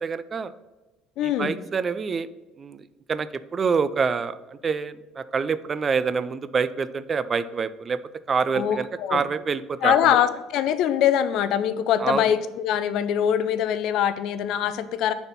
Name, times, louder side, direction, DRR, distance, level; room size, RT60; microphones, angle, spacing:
voice 1, 0.0-0.5 1.2-2.3 2.6-8.0 8.3-10.2 12.0-12.3, right 5 dB, 30° right, 15 dB, 0.3 m, -26 dB
voice 2, 1.2-1.6 8.5-9.2 9.8-15.1, left 10 dB, 65° left, 13 dB, 0.4 m, -23 dB
5.2 x 4.1 x 5.7 m, 1.1 s
cardioid pair, 120°, 0 cm